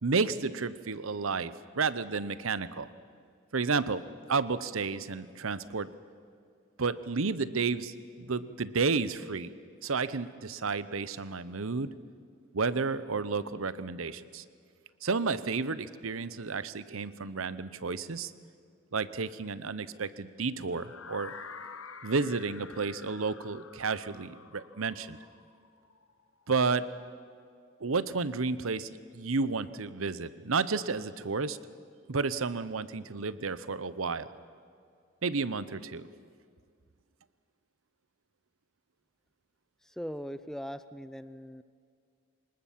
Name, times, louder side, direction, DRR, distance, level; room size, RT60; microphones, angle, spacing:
voice 1, 0.0-2.9 3.5-4.0 4.3-5.9 6.8-9.5 9.8-11.9 12.5-14.4 15.0-18.3 18.9-21.3 22.0-25.2 26.5-26.9 27.8-31.6 32.1-34.3 35.2-36.1, right 4 dB, 85° right, 15 dB, 0.9 m, -31 dB
sound 1, 20.7-26.6, left 5 dB, 90° left, 1.2 m, -48 dB
voice 2, 39.8-41.6, equal, ahead, 13 dB, 0.5 m, -40 dB
25.0 x 20.0 x 7.4 m, 2.2 s
head